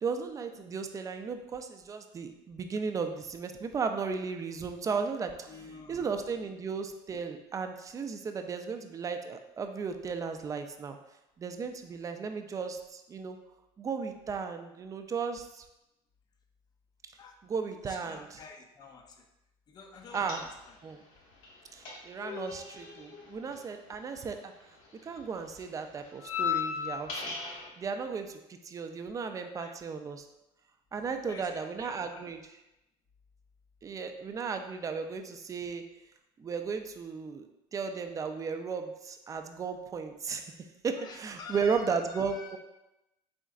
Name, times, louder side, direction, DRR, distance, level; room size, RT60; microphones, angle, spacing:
voice 1, 0.0-5.5 5.9-11.0 11.4-13.4 13.8-15.6 17.4-18.4 20.1-20.4 20.8-21.0 21.7-24.5 25.0-27.4 27.8-28.4 28.6-30.3 30.9-32.4 33.8-35.8 36.4-40.5 40.8-42.6, right 5 dB, 25° right, 6 dB, 0.4 m, -35 dB
voice 2, 5.5-6.1 17.2-17.4 17.7-19.3 19.7-20.8 22.3-22.5 29.4-29.7 31.1-32.2 41.0-42.6, left 5 dB, 30° left, 5 dB, 0.4 m, -49 dB
sound 1, 20.1-20.9 21.2-24.6 24.8-27.7, left 7 dB, 85° left, 1.0 m, -37 dB
4.3 x 3.7 x 2.4 m, 0.90 s
cardioid pair, 115°, 13 cm